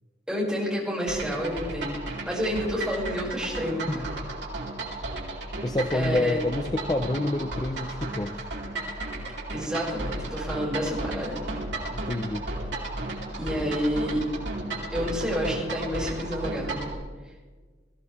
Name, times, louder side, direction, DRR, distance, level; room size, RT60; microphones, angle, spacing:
voice 1, 0.3-4.2 5.9-6.4 9.5-11.4 13.4-14.2 14.9-16.9, equal, 5° right, -5 dB, 6.2 m, -29 dB
sound 1, 1.1-16.9, right 2 dB, 70° right, 4.5 m, -34 dB
voice 2, 5.6-8.5 11.9-12.5, left 1 dB, 20° left, 7 dB, 0.6 m, -28 dB
21.5 x 16.0 x 3.6 m, 1.4 s
head